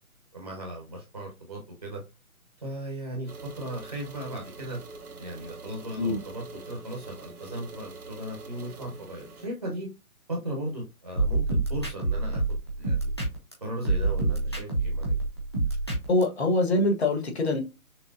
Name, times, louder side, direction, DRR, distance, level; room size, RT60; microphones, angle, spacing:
voice 1, 0.3-2.0 2.6-4.8 5.2-9.9 10.3-12.4 12.8-13.1 13.6-15.2, right 1 dB, 25° right, 0.9 m, -37 dB
sound 1, 3.3-9.5, right 3 dB, 80° right, 1.5 m, -45 dB
sound 2, 11.2-13.5 13.8-16.2, right 3 dB, 20° left, 0.7 m, -26 dB
voice 2, 16.1-17.6, left 2 dB, 45° left, 1.3 m, -24 dB
6.1 x 2.1 x 2.5 m
hypercardioid pair, 175°, 44 cm